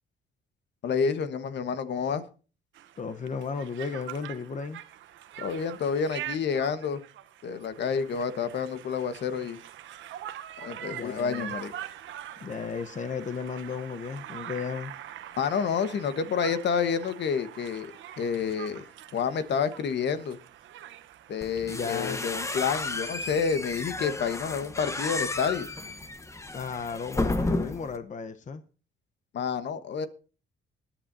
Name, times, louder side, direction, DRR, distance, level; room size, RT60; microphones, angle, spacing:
voice 1, 0.8-2.2 5.4-7.0 7.4-9.6 10.6-11.7 15.4-17.9 18.2-18.9 19.1-20.4 21.3-25.7 29.3-30.1, left 6 dB, 60° left, 1.3 m, -29 dB
Conversation, 2.7-22.3, right 11 dB, 80° right, 0.9 m, -44 dB
voice 2, 3.0-4.8 10.9-11.5 12.4-14.9 21.6-22.2 26.5-28.6, left 5 dB, 40° left, 0.9 m, -34 dB
sound 1, 21.4-28.0, left 2 dB, 15° left, 1.1 m, -32 dB
21.0 x 10.5 x 2.7 m
cardioid pair, 90°, 20 cm